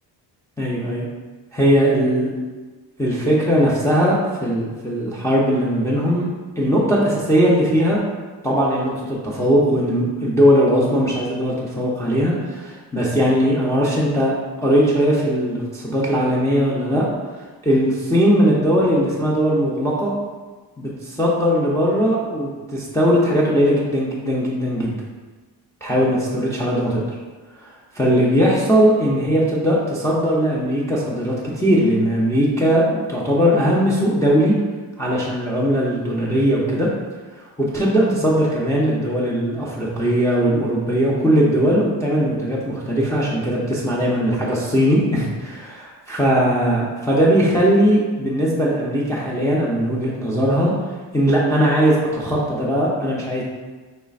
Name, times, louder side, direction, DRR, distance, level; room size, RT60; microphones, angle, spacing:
voice 1, 0.6-1.1 1.5-2.3 3.0-6.3 6.6-8.0 8.4-14.3 14.6-17.0 17.6-20.1 20.8-25.0 25.8-27.0 27.9-34.6 35.0-36.9 37.6-50.7 51.1-53.4, equal, 5° left, -6 dB, 0.6 m, -19 dB
5.2 x 3.2 x 2.4 m, 1.3 s
cardioid pair, 125°, 45 cm